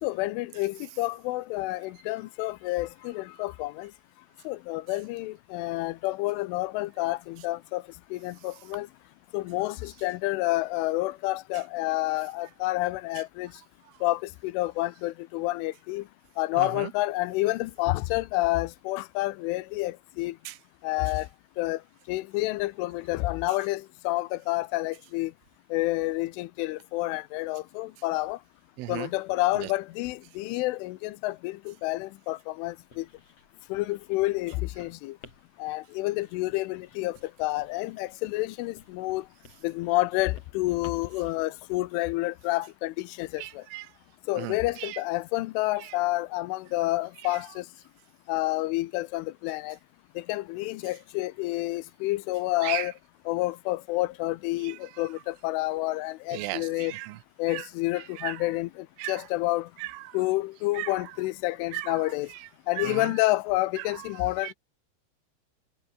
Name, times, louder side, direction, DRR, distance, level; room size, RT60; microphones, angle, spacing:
voice 1, 0.0-3.9 4.5-7.8 8.1-8.9 9.3-13.5 14.0-16.0 16.4-20.3 20.8-21.3 21.6-21.8 22.1-25.3 25.7-28.4 28.9-33.0 33.7-35.1 35.6-37.1 37.4-39.2 39.6-43.4 44.3-47.6 48.3-49.8 50.3-52.9 53.3-56.9 57.4-58.7 59.1-59.7 60.1-62.3 62.7-64.5, left 19 dB, 85° left, 3.3 m, -29 dB
voice 2, 16.6-16.9 20.5-20.6 28.8-29.1 29.5-29.7 43.4-43.9 44.4-45.0 45.8-46.0 47.2-47.4 52.6-52.9 54.6-55.1 56.3-57.2 57.5-57.7 58.0-58.5 59.0-59.3 59.8-60.2 60.7-61.1 61.7-62.5 62.8-63.2 63.8-64.5, right 18 dB, 85° right, 3.6 m, -37 dB
Writing, 32.7-41.3, left 4 dB, 35° left, 5.4 m, -57 dB
omnidirectional pair, 5.6 m